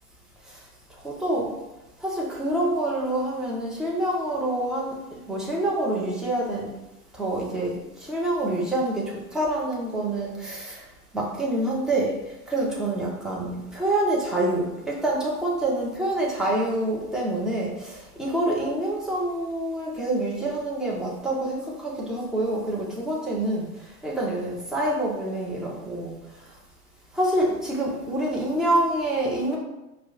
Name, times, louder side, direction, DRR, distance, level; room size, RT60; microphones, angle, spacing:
voice 1, 1.0-1.5 2.0-6.7 7.1-10.8 11.1-12.1 12.5-23.7 24.0-26.2 27.1-29.6, right 1 dB, ahead, -5 dB, 0.5 m, -26 dB
4.5 x 2.1 x 4.0 m, 0.94 s
figure-of-eight pair, 100°, 46 cm